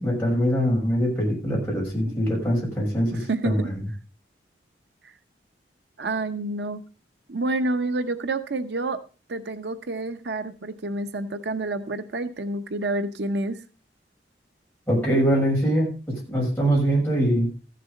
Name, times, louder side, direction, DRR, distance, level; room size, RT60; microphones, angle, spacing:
voice 1, 0.0-3.7 14.9-17.5, equal, 10° left, -4 dB, 6.4 m, -23 dB
voice 2, 3.1-3.7 5.0-5.1 6.0-6.8 7.3-9.0 9.3-13.6, right 2 dB, 70° right, 10 dB, 0.8 m, -28 dB
14.5 x 6.8 x 5.2 m, 0.35 s
head